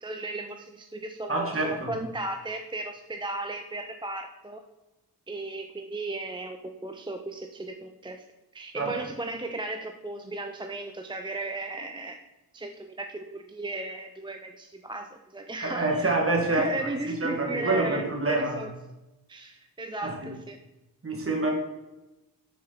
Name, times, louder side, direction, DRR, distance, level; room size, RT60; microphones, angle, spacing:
voice 1, 0.0-4.6 5.3-8.2 8.5-12.2 12.5-16.2 16.5-18.7 19.3-20.6, right 2 dB, 10° right, 4 dB, 0.4 m, -35 dB
voice 2, 1.3-1.9 8.7-9.0 15.6-18.6 20.0-20.3 21.0-21.5, right 2 dB, 35° right, 0 dB, 1.8 m, -27 dB
7.1 x 6.3 x 4.0 m, 1.0 s
wide cardioid pair, 105°, 40 cm